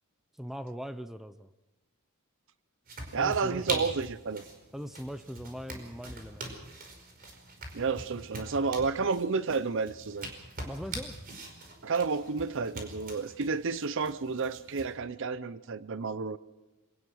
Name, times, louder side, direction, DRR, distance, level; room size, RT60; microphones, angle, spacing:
voice 1, 0.4-1.5 3.2-3.9 4.7-6.5 10.6-11.2, equal, ahead, 0.6 m, -40 dB
sound 1, 2.9-14.9, right 2 dB, 45° right, 5.0 m, -43 dB
voice 2, 3.1-4.4 7.7-10.3 11.8-16.4, right 4 dB, 60° right, 0.6 m, -31 dB
26.0 x 18.0 x 6.4 m
head